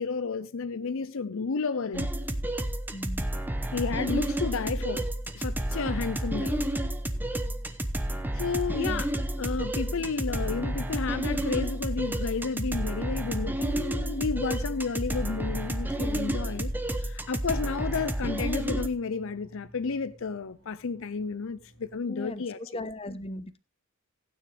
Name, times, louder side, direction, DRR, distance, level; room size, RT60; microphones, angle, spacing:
voice 1, 0.0-2.1 3.7-5.1 5.3-6.6 8.3-9.1 9.4-16.7 17.0-22.6, left 5 dB, 65° left, 0.6 m, -32 dB
sound 1, 1.9-18.9, right 1 dB, 10° right, 0.9 m, -30 dB
voice 2, 2.9-3.3 8.9-9.0 22.1-22.4 22.7-23.6, left 2 dB, 25° left, 0.9 m, -37 dB
sound 2, 5.1-21.9, right 1 dB, 90° right, 6.7 m, -58 dB
15.5 x 9.4 x 3.4 m
head